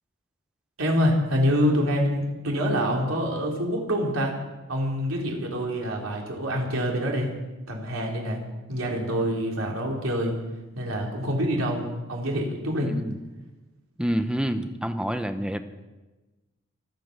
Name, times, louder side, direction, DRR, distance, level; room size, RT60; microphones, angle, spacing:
voice 1, 0.8-4.3 4.7-7.3 7.7-8.4 8.7-10.3 10.8-12.9, equal, 85° right, -1 dB, 3.8 m, -26 dB
voice 2, 12.8-13.2 14.0-15.6, equal, 5° right, 8 dB, 0.8 m, -27 dB
25.0 x 8.4 x 6.6 m, 1.1 s
head